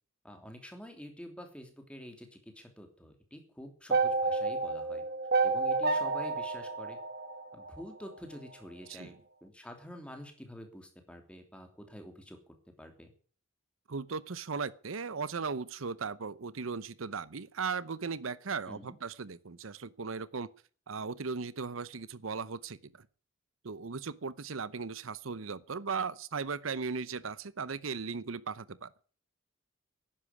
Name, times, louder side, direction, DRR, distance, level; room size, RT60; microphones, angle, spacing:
voice 1, 0.2-5.0 5.4-7.0 7.5-9.1 9.4-13.1 18.6-19.0, equal, 5° left, 3.0 m, -48 dB
sound 1, 3.9-8.1, right 3 dB, 50° right, 2.0 m, -30 dB
voice 2, 13.9-20.5 20.9-22.9 23.6-28.9, right 5 dB, 90° right, 0.8 m, -37 dB
11.5 x 10.0 x 9.7 m
head